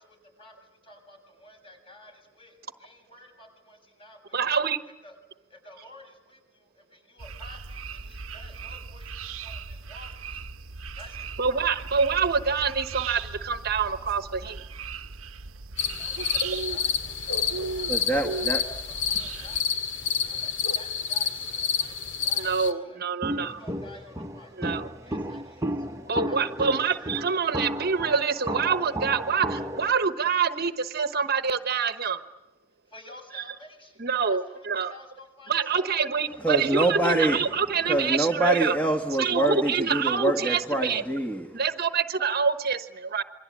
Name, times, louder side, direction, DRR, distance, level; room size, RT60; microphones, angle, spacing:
voice 1, 0.4-4.4 5.0-5.1 5.5-10.4 10.9-11.7 15.9-18.2 18.6-23.0 23.6-24.7 25.0-25.9 26.3-27.1 27.5-27.6 32.9-35.8, left 1 dB, 25° left, 3 dB, 7.4 m, -51 dB
voice 2, 4.3-4.8 11.4-14.6 22.4-23.6 24.6-24.9 26.1-32.2 33.3-33.4 34.0-34.9 35.5-38.8 39.2-41.0 41.5-43.2, right 5 dB, 50° right, 9 dB, 1.2 m, -26 dB
sound 1, 7.2-19.6, right 4 dB, 90° right, 0.9 m, -38 dB
sound 2, 15.8-22.7, left 7 dB, 65° left, 2.2 m, -29 dB
voice 3, 17.9-18.6 36.4-37.4 37.9-41.6, right 1 dB, 10° left, 4 dB, 1.8 m, -25 dB
Walk footsteps, 23.2-29.9, right 1 dB, 15° right, 1.2 m, -33 dB
27.5 x 22.5 x 8.8 m, 0.99 s
head